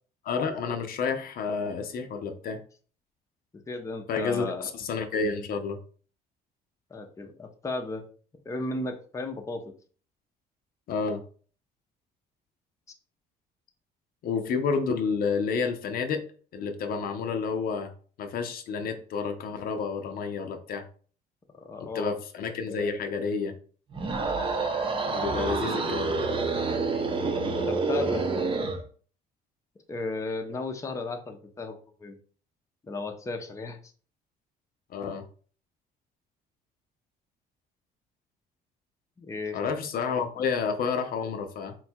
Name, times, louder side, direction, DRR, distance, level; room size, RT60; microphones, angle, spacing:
voice 1, 0.2-2.6 4.1-5.8 10.9-11.2 14.2-16.2 16.5-17.9 18.2-20.8 21.8-23.5 25.1-26.3 34.9-35.2 39.5-41.8, left 5 dB, 60° left, 6 dB, 0.6 m, -30 dB
voice 2, 3.7-4.7 6.9-8.0 8.5-9.7 21.5-22.2 27.4-28.3 29.9-32.2 32.9-33.8 39.2-39.6, left 3 dB, 20° left, 4 dB, 0.6 m, -34 dB
sound 1, 23.9-28.8, right 3 dB, 30° right, 0.7 m, -28 dB
3.8 x 2.3 x 4.4 m, 0.42 s
cardioid pair, 110°, 17 cm